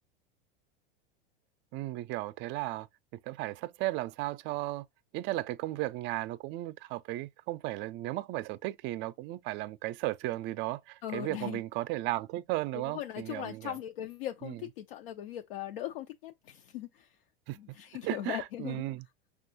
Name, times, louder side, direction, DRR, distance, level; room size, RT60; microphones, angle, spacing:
voice 1, 1.7-2.9 3.2-4.9 5.1-13.7 14.4-14.6 17.5-17.6 18.0-19.0, right 17 dB, 40° right, 0.4 m, -35 dB
voice 2, 11.0-11.6 12.7-17.2 17.5-18.8, left 12 dB, 75° left, 0.5 m, -39 dB
5.8 x 2.4 x 2.7 m
hypercardioid pair, 105°, 29 cm